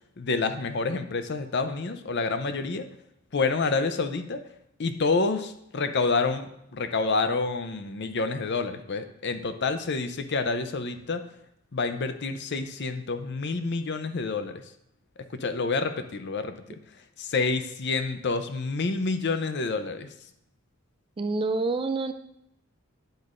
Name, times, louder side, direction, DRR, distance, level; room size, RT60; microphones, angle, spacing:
voice 1, 0.2-2.8 3.3-4.4 4.8-11.2 11.7-14.6 15.3-16.8 17.2-20.1, left 4 dB, 50° left, 9 dB, 0.6 m, -28 dB
voice 2, 21.2-22.1, right 3 dB, 25° right, 9 dB, 0.3 m, -27 dB
9.2 x 7.8 x 2.5 m, 0.79 s
head